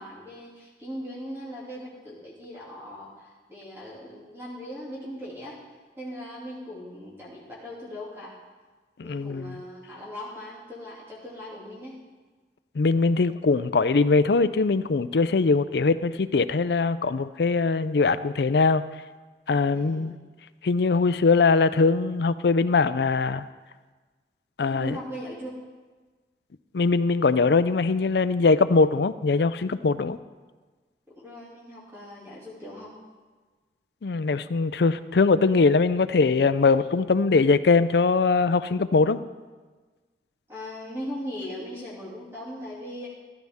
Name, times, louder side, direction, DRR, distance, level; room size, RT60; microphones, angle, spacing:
voice 1, 0.0-5.6 6.0-8.4 9.0-12.0 19.7-20.1 24.8-25.6 31.1-32.9 40.5-43.1, equal, 15° right, -7 dB, 2.6 m, -39 dB
voice 2, 9.0-9.5 12.8-18.8 19.5-20.1 20.6-23.5 24.6-25.0 26.7-30.2 34.0-39.2, left 4 dB, 70° left, 14 dB, 0.5 m, -21 dB
14.5 x 12.5 x 3.6 m, 1.3 s
head